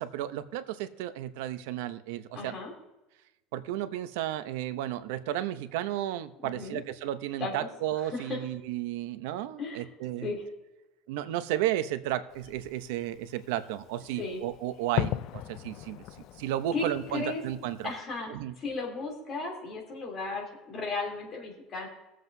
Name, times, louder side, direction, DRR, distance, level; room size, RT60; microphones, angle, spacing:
voice 1, 0.0-2.6 3.5-10.3 11.1-16.0 16.4-17.9 18.3-18.5, right 12 dB, 85° right, 12 dB, 0.7 m, -33 dB
voice 2, 2.3-2.7 6.4-6.8 7.4-7.7 8.0-8.4 9.6-9.9 10.2-10.4 14.2-14.4 16.7-16.8 17.1-17.4 17.8-21.9, left 3 dB, 30° left, -1 dB, 3.0 m, -35 dB
Fireworks, 12.3-18.0, left 14 dB, 45° left, 0.4 m, -39 dB
21.5 x 7.6 x 2.7 m, 0.98 s
cardioid pair, 165°, 0 cm